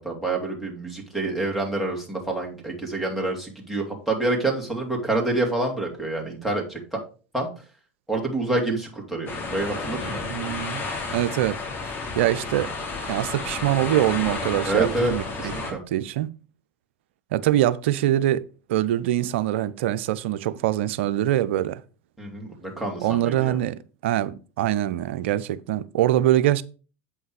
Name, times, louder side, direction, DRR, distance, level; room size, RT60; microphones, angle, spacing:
voice 1, 0.0-7.0 7.3-7.5 8.1-10.2 14.6-15.1 15.4-15.8 22.2-23.6, right 2 dB, ahead, 2.9 m, -27 dB
sound 1, 9.3-15.7, left 3 dB, 35° left, 3.0 m, -32 dB
voice 2, 10.3-10.8 11.1-11.6 12.2-12.7 13.1-16.3 17.3-18.4 18.7-21.8 23.0-26.6, right 13 dB, 70° right, 0.5 m, -24 dB
8.3 x 5.6 x 4.8 m
hypercardioid pair, 85°, 7 cm